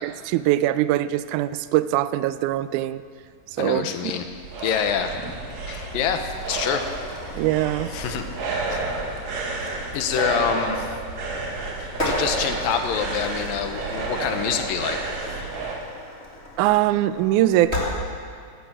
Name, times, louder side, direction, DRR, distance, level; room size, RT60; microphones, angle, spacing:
voice 1, 0.0-3.0 3.6-3.9 7.4-7.9 16.6-17.8, right 14 dB, 85° right, 14 dB, 1.8 m, -22 dB
voice 2, 3.6-4.2 4.6-5.1 5.7-6.9 7.9-8.3 8.7-8.9 9.9-10.9 11.8-15.0, left 8 dB, 80° left, 7 dB, 2.7 m, -26 dB
sound 1, 4.0-15.8, right 3 dB, 55° right, 2.7 m, -31 dB
sound 2, 6.3-17.9, left 1 dB, 25° left, 2.9 m, -36 dB
16.5 x 11.5 x 7.3 m, 2.2 s
omnidirectional pair, 4.0 m